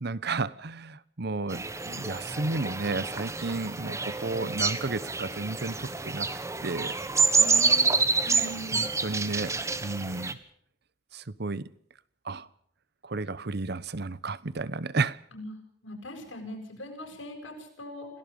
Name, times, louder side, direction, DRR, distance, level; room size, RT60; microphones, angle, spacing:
voice 1, 0.0-6.3 6.6-6.9 8.7-10.4 11.1-11.7 12.2-12.5 13.0-15.2, right 3 dB, 55° right, 0.9 m, -32 dB
sound 1, 1.5-10.3, right 4 dB, 15° right, 1.4 m, -28 dB
voice 2, 7.3-8.8 15.3-15.5 15.8-18.1, left 1 dB, 80° left, 7.5 m, -40 dB
27.5 x 18.0 x 5.3 m
head